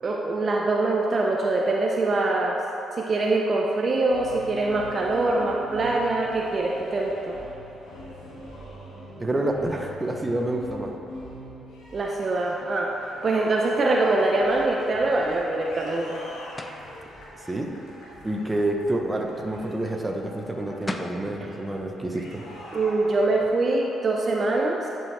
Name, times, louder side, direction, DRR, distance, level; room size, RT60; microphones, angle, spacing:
voice 1, 0.0-2.6 3.0-7.4 11.9-16.2 22.7-24.9, right 2 dB, 45° right, -1 dB, 0.6 m, -24 dB
sound 1, 4.0-23.5, equal, 85° left, 1.5 m, -43 dB
voice 2, 9.2-10.9 17.4-17.7 18.2-22.4, right 1 dB, 20° right, 1 dB, 0.8 m, -28 dB
sound 2, 16.6-16.9 20.5-20.6 20.9-21.2, left 2 dB, 20° left, 0.5 m, -34 dB
10.5 x 4.6 x 3.3 m, 3.0 s
supercardioid pair, 65°, 0 cm